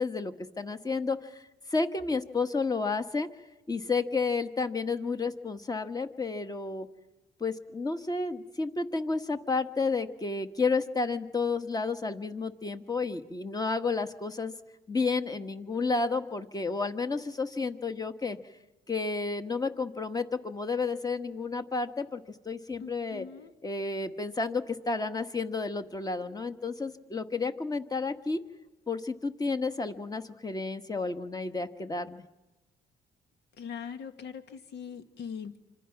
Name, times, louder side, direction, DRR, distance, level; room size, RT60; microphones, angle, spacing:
voice 1, 0.0-1.4 1.7-3.3 3.7-6.9 7.4-14.5 14.9-18.4 18.9-23.3 23.6-28.4 28.9-32.2, left 4 dB, 20° left, 9 dB, 1.5 m, -31 dB
voice 2, 22.8-23.5 33.6-35.6, left 7 dB, 75° left, 9 dB, 1.8 m, -41 dB
27.0 x 25.5 x 6.0 m, 1.0 s
cardioid pair, 105°, 18 cm